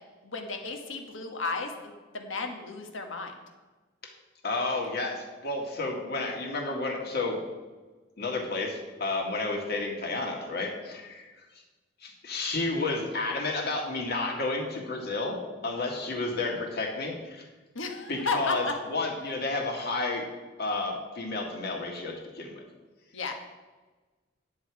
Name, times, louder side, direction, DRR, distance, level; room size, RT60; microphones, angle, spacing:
voice 1, 0.2-3.3 17.7-18.7 23.1-23.3, left 3 dB, 75° left, 4 dB, 1.4 m, -33 dB
voice 2, 4.4-7.4 8.2-11.3 12.0-15.4 15.6-17.5 18.1-20.3 20.6-22.6, left 3 dB, 50° left, 0 dB, 1.9 m, -31 dB
10.0 x 7.8 x 4.8 m, 1.3 s
head